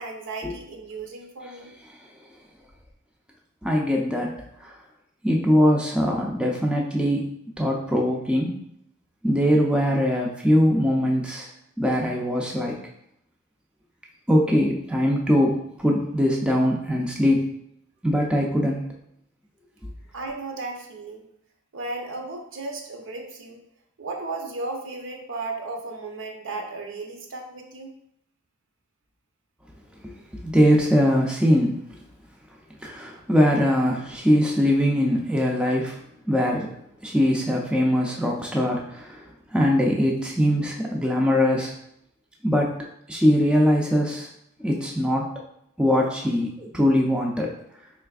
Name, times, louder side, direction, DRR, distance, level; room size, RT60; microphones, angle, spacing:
voice 1, 0.0-1.7 20.1-21.3 21.7-23.6 24.0-27.9, right 3 dB, 60° right, 2 dB, 0.6 m, -35 dB
voice 2, 3.6-4.3 4.6-4.8 5.2-7.3 7.6-8.6 9.2-11.5 11.8-12.8 14.3-17.5 18.0-18.8 30.0-30.1 30.4-31.8 32.8-36.0 36.3-36.7 37.0-39.2 39.5-41.7 42.4-44.3 44.6-45.3 45.8-47.5, equal, 5° right, -1 dB, 0.4 m, -22 dB
4.1 x 3.3 x 2.3 m, 0.74 s
head